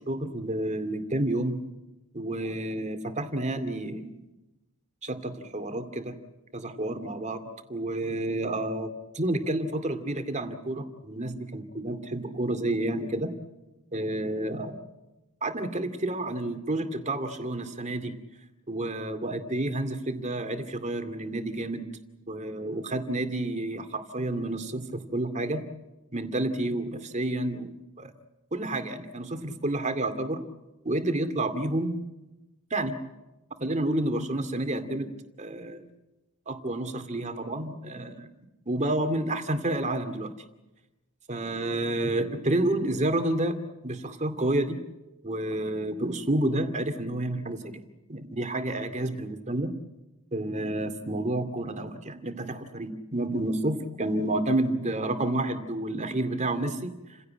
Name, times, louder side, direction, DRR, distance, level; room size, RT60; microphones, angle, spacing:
voice 1, 0.0-1.6 2.1-4.1 5.0-6.1 6.5-7.4 7.7-13.3 13.9-14.8 15.4-18.1 18.7-21.8 22.3-25.7 26.1-27.7 28.0-28.1 28.5-30.5 30.8-32.0 32.7-32.9 33.6-35.9 36.5-38.3 38.7-40.4 41.3-44.8 45.2-47.8 48.1-49.7 50.3-57.2, right 1 dB, 35° right, 8 dB, 2.4 m, -30 dB
30.0 x 16.5 x 8.9 m, 1.0 s
head